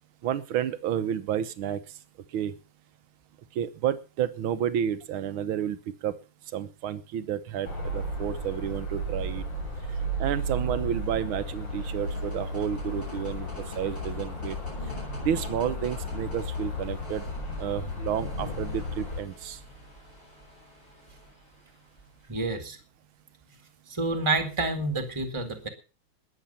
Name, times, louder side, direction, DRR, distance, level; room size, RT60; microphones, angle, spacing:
voice 1, 0.2-1.8 2.3-2.5 3.6-5.8 6.0-6.2 6.5-9.5 10.2-13.5 13.8-14.6 15.2-17.3 17.6-19.6, right 9 dB, 80° right, 13 dB, 1.8 m, -30 dB
sound 1, 7.6-19.2, equal, 60° left, 5.1 m, -34 dB
sound 2, 11.7-22.5, equal, 35° left, 8.6 m, -48 dB
voice 2, 22.3-22.8 23.9-25.7, right 3 dB, 15° right, 6 dB, 2.2 m, -28 dB
21.0 x 7.9 x 5.6 m, 0.34 s
omnidirectional pair, 2.3 m